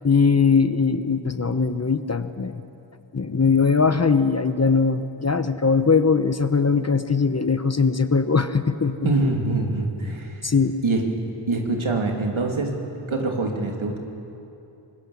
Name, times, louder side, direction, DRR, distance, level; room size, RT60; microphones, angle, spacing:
voice 1, 0.0-2.6 3.1-9.1 10.4-10.8, left 5 dB, 30° left, 11 dB, 0.9 m, -20 dB
voice 2, 9.0-10.5 10.8-11.0 11.5-12.7 13.1-14.0, right 3 dB, 70° right, 2 dB, 2.9 m, -24 dB
24.5 x 19.5 x 7.2 m, 2.8 s
wide cardioid pair, 60°, 49 cm